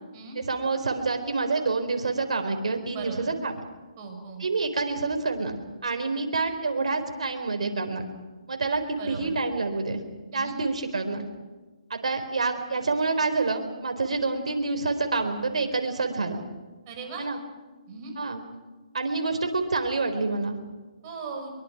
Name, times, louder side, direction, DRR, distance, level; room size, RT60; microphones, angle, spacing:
voice 1, 0.4-3.5 4.4-5.6 5.8-8.0 8.5-10.0 10.3-11.2 11.9-16.4 17.2-17.4 18.2-18.4 18.9-20.6, right 3 dB, 75° right, 6 dB, 4.3 m, -27 dB
voice 2, 2.9-3.3 4.0-4.4 9.0-9.3 10.3-10.6 16.9-17.2 17.9-18.1 21.0-21.5, right 4 dB, 35° right, 3 dB, 6.0 m, -38 dB
23.5 x 23.5 x 6.1 m, 1.3 s
hypercardioid pair, 145°, 4 cm